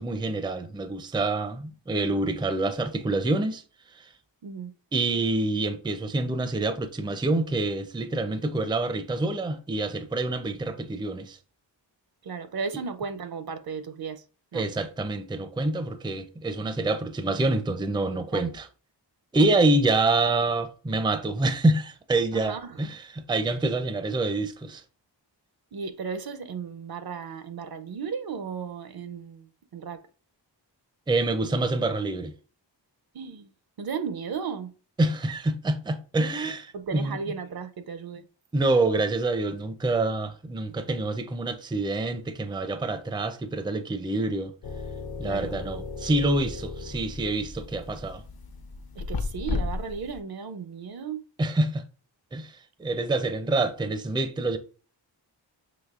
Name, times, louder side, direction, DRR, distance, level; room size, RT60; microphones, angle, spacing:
voice 1, 0.0-3.6 3.9-4.1 4.9-11.4 14.5-18.7 19.3-23.0 23.3-24.8 31.1-32.3 35.0-37.2 38.5-44.5 45.2-48.2 51.4-51.9 52.3-52.5 52.8-54.6, right 2 dB, 10° right, 0.4 m, -26 dB
voice 2, 4.4-4.7 12.2-14.2 14.5-14.7 18.3-18.5 22.3-22.8 25.7-30.0 33.1-33.5 33.8-34.7 36.7-38.2 45.2-45.6 48.9-51.2, right 5 dB, 55° right, 0.6 m, -35 dB
sound 1, 44.6-50.2, left 3 dB, 55° left, 0.7 m, -35 dB
5.7 x 3.0 x 2.4 m
wide cardioid pair, 65°, 44 cm